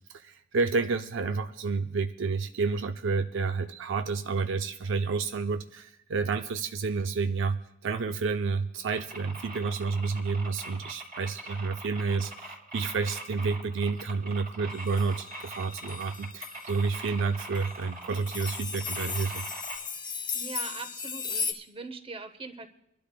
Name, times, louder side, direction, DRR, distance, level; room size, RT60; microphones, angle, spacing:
voice 1, 0.1-19.5, right 4 dB, 65° right, 8 dB, 0.5 m, -30 dB
sound 1, 8.9-19.8, right 2 dB, 45° right, 3.2 m, -42 dB
sound 2, 14.7-16.9 17.5-17.7 18.1-21.5, left 6 dB, 20° left, 0.6 m, -36 dB
voice 2, 20.3-22.7, right 4 dB, 25° right, 9 dB, 0.8 m, -41 dB
27.0 x 12.0 x 2.2 m, 0.78 s
head